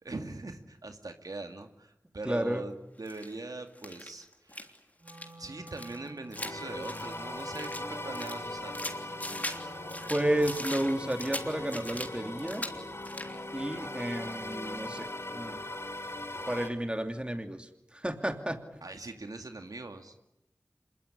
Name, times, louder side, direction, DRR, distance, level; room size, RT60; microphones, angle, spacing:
voice 1, 0.0-4.7 5.4-8.9 18.8-20.1, right 2 dB, 70° right, 6 dB, 2.3 m, -41 dB
voice 2, 2.2-2.6 10.1-12.6 13.5-15.1 15.3-15.6 16.5-18.8, right 1 dB, 15° right, 6 dB, 2.8 m, -32 dB
sound 1, 3.1-3.3 3.7-4.8 5.1-5.3 5.7-7.8 8.1-9.6 9.9-12.1 12.4-12.8 13.0-13.4, left 1 dB, 25° left, 3.4 m, -40 dB
Wind instrument woodwind instrument, 5.0-13.0, right 1 dB, 40° right, 2.9 m, -52 dB
sound 2, 6.4-16.7, left 1 dB, 40° left, 3.4 m, -40 dB
27.0 x 21.5 x 10.0 m, 0.85 s
wide cardioid pair, 50°, 6 cm